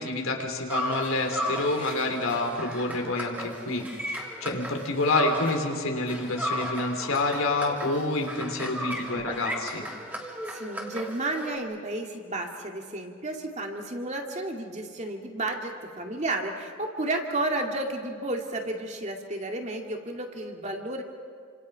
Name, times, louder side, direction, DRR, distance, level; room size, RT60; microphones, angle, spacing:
voice 1, 0.0-9.9, left 2 dB, 85° left, 3 dB, 3.4 m, -28 dB
sound 1, 0.7-5.8 6.1-11.6, equal, 10° right, 2.7 m, -35 dB
voice 2, 10.5-21.0, right 2 dB, 35° right, 2 dB, 2.3 m, -32 dB
28.5 x 26.5 x 5.7 m, 2.2 s
head